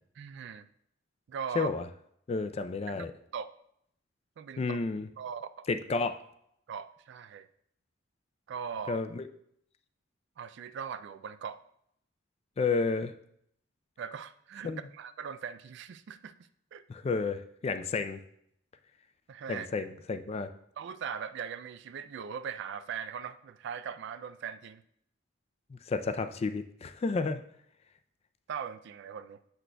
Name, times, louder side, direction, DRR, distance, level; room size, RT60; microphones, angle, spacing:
voice 1, 0.2-0.7 1.3-1.7 3.3-3.5 4.4-4.8 5.2-5.7 6.7-7.5 8.5-9.0 10.4-11.6 14.0-16.3 16.7-16.8 19.3-19.9 20.8-24.8 28.5-29.4, right 7 dB, 60° right, 13 dB, 0.3 m, -40 dB
voice 2, 2.3-3.1 4.6-5.1 5.7-6.2 8.9-9.3 12.6-13.1 14.6-14.8 16.9-18.2 19.5-20.5 25.7-27.4, left 4 dB, 30° left, 9 dB, 0.3 m, -31 dB
7.8 x 6.1 x 2.2 m, 0.71 s
head